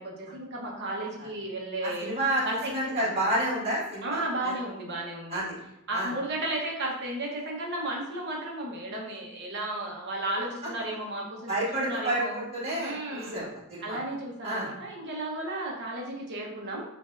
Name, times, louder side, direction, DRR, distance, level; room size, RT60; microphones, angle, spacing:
voice 1, 0.0-2.1 2.4-3.0 4.0-5.4 5.9-12.3 12.8-13.4 13.8-16.8, right 1 dB, 55° right, -1 dB, 1.0 m, -34 dB
voice 2, 1.8-4.5 5.3-5.6 5.9-6.1 11.5-14.0 14.4-14.7, right 1 dB, 30° right, -6 dB, 1.6 m, -30 dB
6.5 x 2.6 x 2.5 m, 0.86 s
head